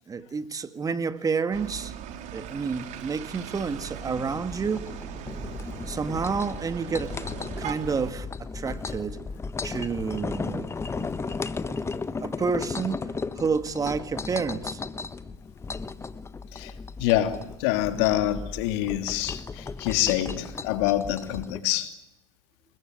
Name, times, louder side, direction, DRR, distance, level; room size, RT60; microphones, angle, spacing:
voice 1, 0.1-1.9 2.3-4.9 5.9-7.2 7.6-9.2 9.6-11.4 11.7-11.8 12.2-13.1 13.3-14.8, right 5 dB, 25° right, 1.8 m, -30 dB
sound 1, 1.5-8.1, right 10 dB, 50° right, 3.7 m, -39 dB
sound 2, 2.4-21.6, left 4 dB, 15° left, 1.3 m, -36 dB
voice 2, 17.0-21.9, left 14 dB, 65° left, 3.1 m, -26 dB
28.5 x 21.5 x 9.3 m
hypercardioid pair, 95°, 15 cm